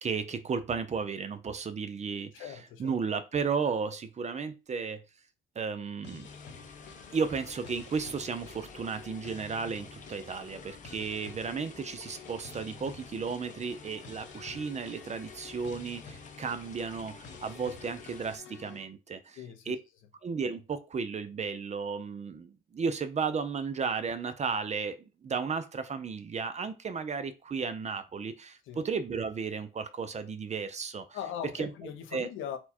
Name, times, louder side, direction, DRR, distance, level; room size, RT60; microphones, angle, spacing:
voice 1, 0.0-2.5 2.8-5.0 5.6-6.3 7.1-19.4 19.7-19.8 20.2-31.0 31.6-31.7 32.1-32.3, right 5 dB, 35° right, 0.5 m, -34 dB
voice 2, 2.3-3.0 19.4-19.7 28.7-28.8 31.1-32.6, left 9 dB, 85° left, 0.8 m, -40 dB
sound 1, 6.0-18.8, left 5 dB, 65° left, 1.0 m, -50 dB
sound 2, 6.2-18.4, left 5 dB, 40° left, 0.7 m, -51 dB
4.3 x 2.3 x 4.3 m
cardioid pair, 90°, 20 cm